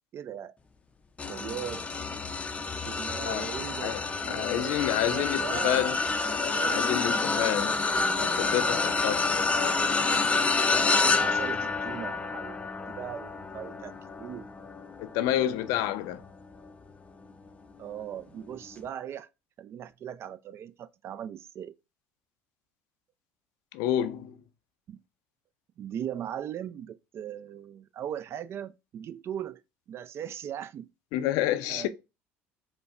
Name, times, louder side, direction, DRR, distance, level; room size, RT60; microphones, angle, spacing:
voice 1, 0.1-0.6 1.3-1.9 2.7-5.9 6.5-7.1 11.0-13.9 14.2-14.5 17.8-19.3 19.6-21.7 24.9-25.0 25.8-29.6 29.9-30.9 31.7-31.9, right 9 dB, 45° right, 0.4 m, -39 dB
sound 1, 1.2-16.7 17.2-17.5 18.7-18.8, left 3 dB, 20° left, 0.5 m, -28 dB
voice 2, 4.3-6.0 6.7-7.8 8.2-9.3 15.0-16.2 23.7-24.4 31.1-31.9, left 12 dB, 70° left, 0.5 m, -29 dB
5.1 x 2.1 x 2.4 m
supercardioid pair, 90°, 6 cm